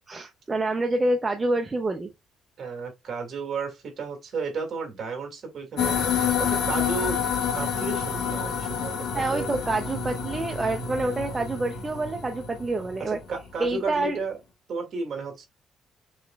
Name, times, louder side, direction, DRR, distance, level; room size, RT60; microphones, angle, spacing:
voice 1, 0.1-2.1 9.1-13.2 13.6-14.2, right 2 dB, 15° right, 0.5 m, -27 dB
voice 2, 2.6-7.2 7.5-9.5 13.1-14.4 14.7-15.5, right 4 dB, 40° right, 1.9 m, -33 dB
sound 1, 5.8-13.4, left 7 dB, 85° left, 1.7 m, -28 dB
6.3 x 3.0 x 2.2 m
cardioid pair, 170°, 0 cm